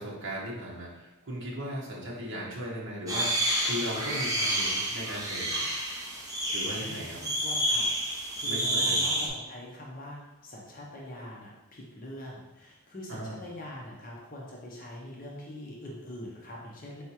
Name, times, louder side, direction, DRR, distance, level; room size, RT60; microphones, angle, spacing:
voice 1, 0.0-5.6 6.5-7.2 8.4-9.1 13.1-13.4, equal, 60° right, -5 dB, 1.0 m, -37 dB
sound 1, 3.1-9.3, right 1 dB, 15° right, 0.6 m, -29 dB
voice 2, 6.8-17.0, left 1 dB, 40° left, -3 dB, 0.7 m, -43 dB
4.5 x 3.5 x 2.9 m, 1.0 s
head